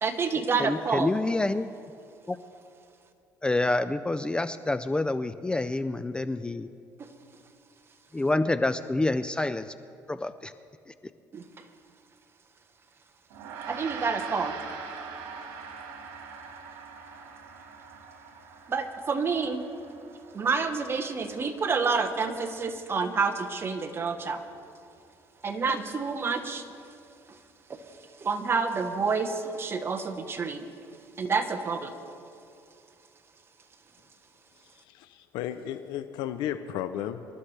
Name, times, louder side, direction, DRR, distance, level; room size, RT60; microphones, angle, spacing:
voice 1, 0.0-1.1 7.0-7.1 11.3-11.4 13.7-14.5 18.7-19.6 20.3-24.4 25.4-26.6 27.7-27.8 28.2-30.7 31.2-31.9, right 5 dB, 35° right, 6 dB, 1.2 m, -28 dB
voice 2, 0.6-1.7 2.3-2.4 3.4-6.7 8.1-9.7 10.1-10.5, left 2 dB, 15° left, 12 dB, 0.4 m, -27 dB
Gong, 13.3-22.8, right 6 dB, 85° right, 2.2 m, -43 dB
voice 3, 34.6-37.3, left 11 dB, 80° left, 10 dB, 0.6 m, -34 dB
25.0 x 13.0 x 3.3 m, 2.6 s
cardioid pair, 95°, 7 cm